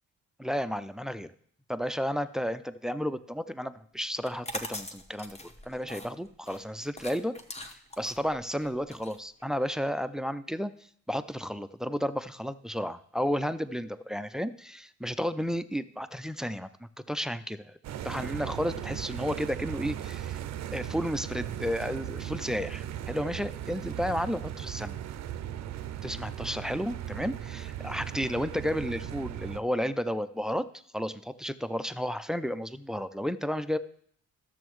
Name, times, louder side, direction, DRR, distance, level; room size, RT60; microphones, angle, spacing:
voice 1, 0.4-1.3 1.7-5.4 5.7-7.3 7.6-10.7 11.1-17.8 18.0-20.4 20.7-25.0 26.0-33.8, equal, ahead, 13 dB, 0.3 m, -32 dB
sound 1, 4.1-9.9, left 1 dB, 20° left, 1.0 m, -42 dB
sound 2, 17.8-29.6, right 11 dB, 60° right, 0.5 m, -37 dB
12.0 x 6.9 x 3.1 m, 0.64 s
cardioid pair, 90°, 30 cm